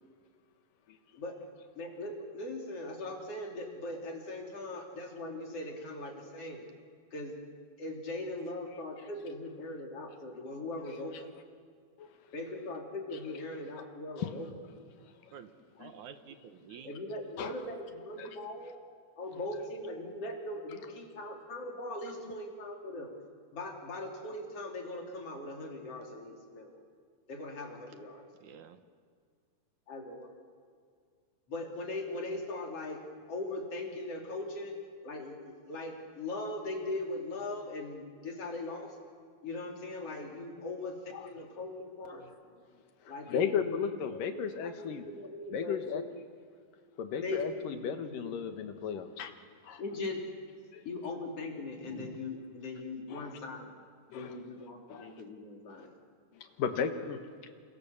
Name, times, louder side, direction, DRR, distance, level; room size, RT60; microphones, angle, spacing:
voice 1, 1.7-6.7 7.1-7.4 7.8-11.3 12.3-14.5 16.8-18.8 19.2-23.1 23.5-26.8 27.3-28.3 29.9-30.3 31.5-33.0 33.3-34.8 35.0-39.0 39.4-42.3 43.1-43.8 44.3-44.5 44.8-46.1 47.2-48.5 49.8-50.2 50.9-53.7 54.1-55.9, left 2 dB, 45° left, 1 dB, 4.1 m, -40 dB
voice 2, 15.0-15.3 15.8-16.1 16.7-16.8 17.4-17.5 18.2-18.4 22.3-22.4 41.1-41.3 43.0-45.1 45.5-46.0 47.0-49.3 49.6-49.8 50.7-50.8 53.1-53.4 54.1-54.4 54.9-55.2 55.7-55.8 56.3-57.5, left 7 dB, 85° left, 7 dB, 3.1 m, -36 dB
voice 3, 15.8-16.9 28.4-28.8 51.8-52.3 54.9-55.0, right 8 dB, 70° right, 9 dB, 2.4 m, -49 dB
29.0 x 25.5 x 7.2 m, 2.1 s
omnidirectional pair, 3.8 m